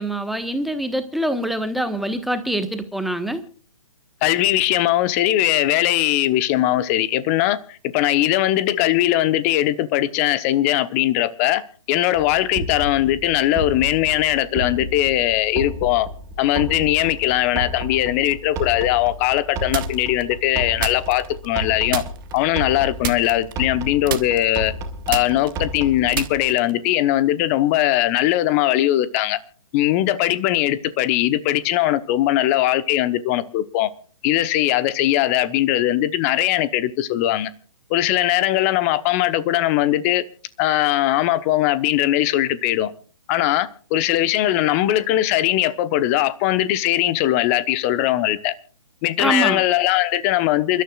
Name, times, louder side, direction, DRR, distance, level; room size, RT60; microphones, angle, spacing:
voice 1, 0.0-3.4 49.2-49.6, right 1 dB, ahead, 1.2 m, -24 dB
voice 2, 4.2-11.6 11.9-16.1 16.4-22.0 22.3-24.7 25.1-29.4 29.7-33.9 34.2-37.5 37.9-40.2 40.6-42.9 43.3-48.5 49.0-50.8, left 14 dB, 25° left, 1.0 m, -20 dB
sound 1, 12.1-26.5, right 1 dB, 20° right, 2.0 m, -32 dB
sound 2, 19.7-20.2 20.8-21.6 21.9-22.4 23.0-23.8 24.1-26.9, right 10 dB, 40° right, 1.1 m, -29 dB
28.5 x 13.0 x 2.4 m
figure-of-eight pair, 135°, 18 cm